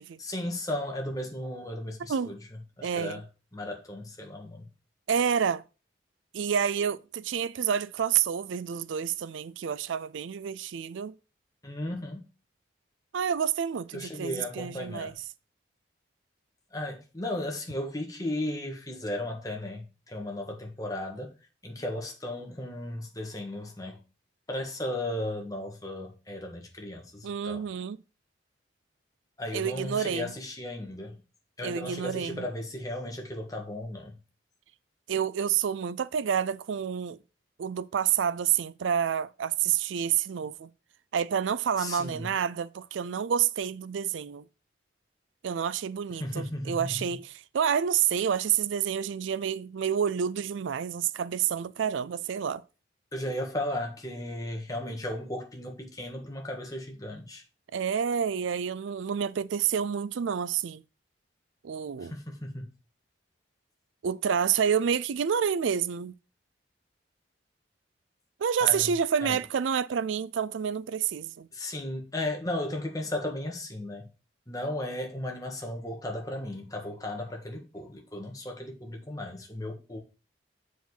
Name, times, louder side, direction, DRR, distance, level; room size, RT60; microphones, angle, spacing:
voice 1, 0.2-2.4 2.8-3.2 3.5-4.6 11.6-12.2 13.9-15.2 16.7-21.3 21.6-24.0 24.5-27.6 29.4-31.2 31.6-34.1 41.8-42.3 46.2-47.2 53.1-57.4 62.0-62.7 68.6-68.9 69.2-69.4 71.5-74.1 74.5-80.0, left 1 dB, 20° left, 1.6 m, -35 dB
voice 2, 2.8-3.2 5.1-5.6 6.3-11.1 13.1-15.1 27.2-28.0 29.5-30.3 31.6-32.5 35.1-37.2 37.6-40.7 41.1-44.4 45.4-52.6 57.7-60.8 61.6-62.1 64.0-66.1 68.4-71.5, right 8 dB, 80° right, 0.4 m, -28 dB
7.3 x 5.0 x 5.5 m
head